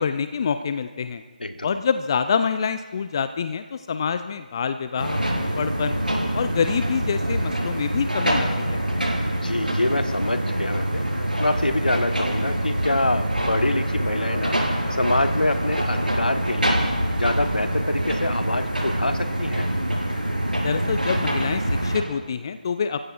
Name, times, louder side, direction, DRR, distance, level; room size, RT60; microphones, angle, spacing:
voice 1, 0.0-1.2 1.6-6.0 6.3-8.8 20.6-23.1, left 6 dB, 30° left, 10 dB, 0.4 m, -26 dB
voice 2, 1.4-1.7 9.4-14.6 15.0-16.8 17.2-19.7, left 2 dB, 75° left, 8 dB, 1.1 m, -25 dB
sound 1, 5.0-22.0, right 1 dB, 85° right, 4.2 m, -25 dB
29.5 x 15.0 x 2.4 m, 1.4 s
figure-of-eight pair, 155°, 5 cm